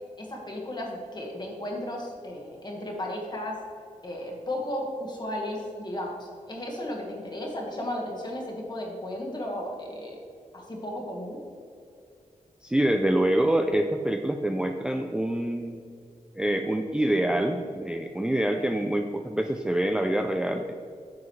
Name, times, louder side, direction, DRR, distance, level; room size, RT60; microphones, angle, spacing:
voice 1, 0.2-3.6 4.0-10.2 10.5-11.4, left 1 dB, 35° left, 0 dB, 1.6 m, -34 dB
voice 2, 12.6-15.8 16.4-20.7, right 1 dB, 5° right, 4 dB, 0.3 m, -26 dB
9.7 x 7.1 x 3.2 m, 2.4 s
wide cardioid pair, 150°, 14 cm